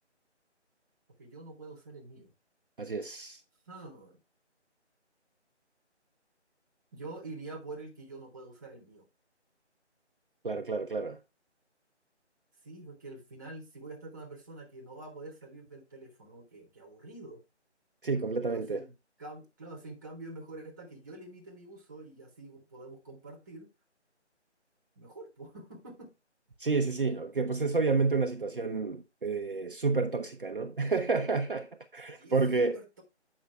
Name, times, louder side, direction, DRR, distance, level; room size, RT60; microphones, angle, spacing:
voice 1, 1.2-2.3 3.7-4.2 6.9-9.0 12.6-17.4 18.4-18.9 19.2-23.7 24.9-26.1 32.1-33.0, right 2 dB, 15° right, 1.3 m, -46 dB
voice 2, 2.8-3.4 10.4-11.2 18.0-18.8 26.6-32.8, right 4 dB, 50° right, 0.8 m, -30 dB
8.4 x 5.5 x 3.3 m
figure-of-eight pair, 165°, 35 cm